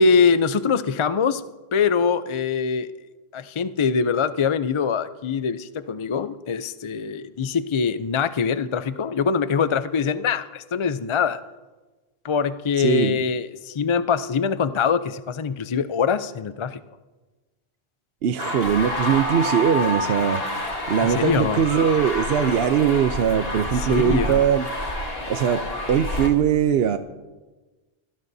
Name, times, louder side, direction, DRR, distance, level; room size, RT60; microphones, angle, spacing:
voice 1, 0.0-1.4 1.7-2.9 3.3-11.4 12.2-16.8 21.0-21.6 23.6-24.4, left 6 dB, 40° left, 0.4 m, -23 dB
voice 2, 12.8-13.2 18.2-20.4 20.9-24.7 25.3-27.0, right 8 dB, 70° right, 0.9 m, -21 dB
sound 1, 18.4-26.3, left 1 dB, 65° left, 2.3 m, -28 dB
24.5 x 18.0 x 2.7 m
omnidirectional pair, 1.1 m